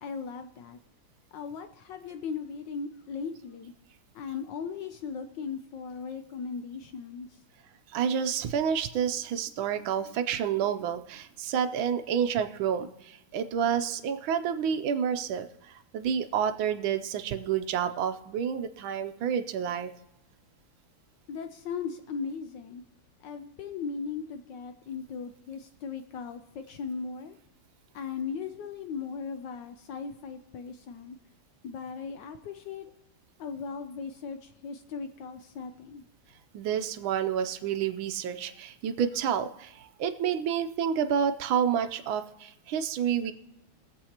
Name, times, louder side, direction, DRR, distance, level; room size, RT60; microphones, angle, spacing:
voice 1, 0.0-0.8 1.3-3.7 4.1-7.4 21.3-22.8 23.2-27.4 27.9-31.2 31.6-32.9 33.4-36.0, left 5 dB, 70° left, 7 dB, 1.1 m, -38 dB
voice 2, 7.9-19.9 36.5-43.3, right 8 dB, 75° right, 9 dB, 1.4 m, -29 dB
22.0 x 7.7 x 2.9 m, 0.89 s
omnidirectional pair, 2.4 m